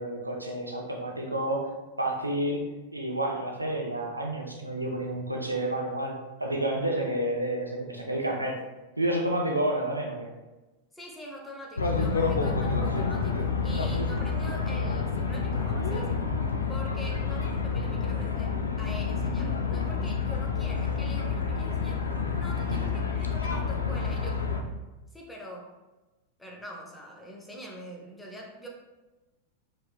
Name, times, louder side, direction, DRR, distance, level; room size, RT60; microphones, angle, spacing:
voice 1, 0.0-1.7 2.0-2.6 2.9-8.6 9.0-10.3 22.7-22.9, right 1 dB, 85° right, 1 dB, 0.5 m, -30 dB
voice 2, 10.9-16.2 16.7-22.0 22.3-24.4 25.1-25.7 26.4-28.7, equal, 5° left, -1 dB, 0.8 m, -44 dB
sound 1, 11.8-24.6, left 5 dB, 75° left, 0.4 m, -28 dB
4.7 x 3.1 x 2.3 m, 1.1 s
figure-of-eight pair, 90°, 0 cm